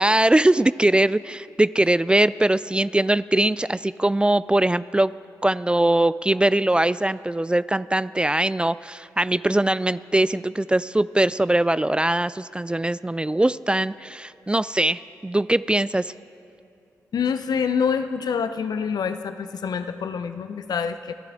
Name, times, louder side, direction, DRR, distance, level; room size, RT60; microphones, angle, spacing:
voice 1, 0.0-5.1 5.4-16.1, right 1 dB, 15° right, 17 dB, 0.3 m, -21 dB
voice 2, 17.1-21.1, left 6 dB, 65° left, 10 dB, 0.7 m, -26 dB
29.0 x 11.0 x 3.7 m, 2.4 s
supercardioid pair, 40°, 7 cm